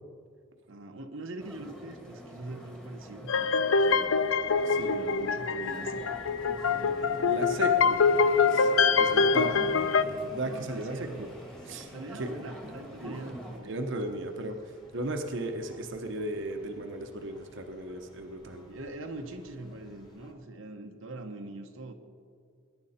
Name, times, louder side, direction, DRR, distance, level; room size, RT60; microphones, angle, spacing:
voice 1, 0.7-4.1 4.7-6.1 6.7-7.2 10.4-11.3 11.9-13.7 18.7-21.9, right 2 dB, 90° right, 4 dB, 1.0 m, -43 dB
sound 1, 1.4-13.6, equal, 5° left, 1.7 m, -47 dB
sound 2, 3.3-10.0, left 5 dB, 90° left, 0.6 m, -25 dB
Neighborhood Night ambience Dogs motorbikes and neighbors, 4.3-20.3, equal, 25° left, 2.3 m, -51 dB
voice 2, 4.7-5.0 7.2-8.0 8.5-9.6 10.0-11.3 11.6-11.9 12.2-12.3 13.0-13.2 13.6-14.6 14.9-18.6, right 2 dB, 65° right, 5 dB, 1.0 m, -35 dB
21.0 x 10.5 x 4.3 m, 2.1 s
head